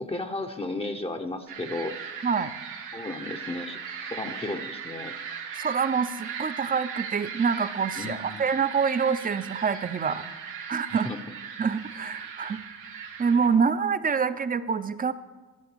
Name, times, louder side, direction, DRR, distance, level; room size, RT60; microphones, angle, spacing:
voice 1, 0.0-2.0 2.9-5.1 8.0-8.5 10.9-11.2, left 2 dB, 20° left, 5 dB, 0.8 m, -34 dB
sound 1, 1.5-13.5, right 7 dB, 85° right, 1.8 m, -38 dB
voice 2, 5.6-10.3 10.7-11.1 11.6-12.6 13.2-15.1, right 6 dB, 30° right, 13 dB, 0.6 m, -26 dB
11.5 x 7.1 x 6.9 m, 1.3 s
cardioid pair, 90°, 30 cm